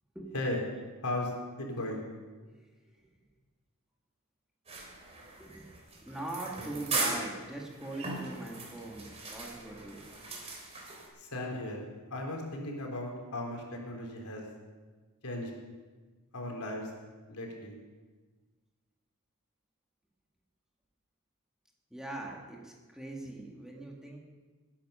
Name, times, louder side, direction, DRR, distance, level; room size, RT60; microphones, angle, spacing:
voice 1, 1.6-2.0 11.2-11.8 12.1-14.5 15.2-15.5 16.3-16.9 17.3-17.7, left 1 dB, 85° left, 0 dB, 3.8 m, -36 dB
sound 1, 4.7-11.1, right 3 dB, 30° right, 3.2 m, -38 dB
voice 2, 6.0-10.0 21.9-24.2, right 2 dB, 5° right, -2 dB, 2.1 m, -42 dB
sound 2, 6.9-8.7 9.8-11.5, right 3 dB, 90° right, 4.7 m, -51 dB
20.0 x 10.0 x 5.7 m, 1.3 s
head